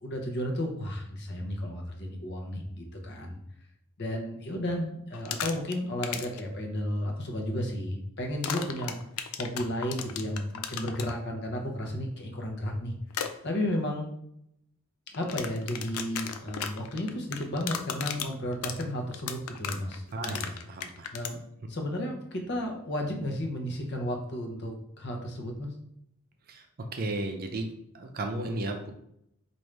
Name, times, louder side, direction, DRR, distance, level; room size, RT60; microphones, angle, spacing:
voice 1, 0.0-3.4 4.0-9.0 9.3-12.9 13.4-14.1 15.1-20.4 21.1-21.4 21.7-25.7, left 1 dB, 50° left, 2 dB, 0.8 m, -33 dB
sound 1, 5.1-5.7 6.0-6.4 8.4-11.1 13.1-13.3 15.1-21.3, left 8 dB, 75° left, 0.4 m, -35 dB
voice 2, 20.1-21.1 26.5-28.9, right 2 dB, 40° right, 4 dB, 0.5 m, -34 dB
4.6 x 2.6 x 3.2 m, 0.74 s
head